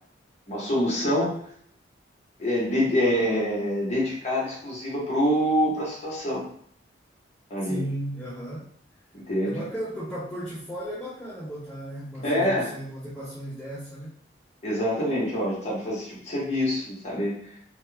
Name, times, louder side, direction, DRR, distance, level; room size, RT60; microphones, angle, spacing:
voice 1, 0.5-1.3 2.4-6.4 7.5-7.8 9.3-9.6 12.2-12.7 14.6-17.5, equal, 40° left, -6 dB, 1.1 m, -26 dB
voice 2, 7.6-8.7 9.4-14.1, right 1 dB, 10° left, -9 dB, 0.6 m, -35 dB
2.9 x 2.1 x 3.3 m, 0.63 s
head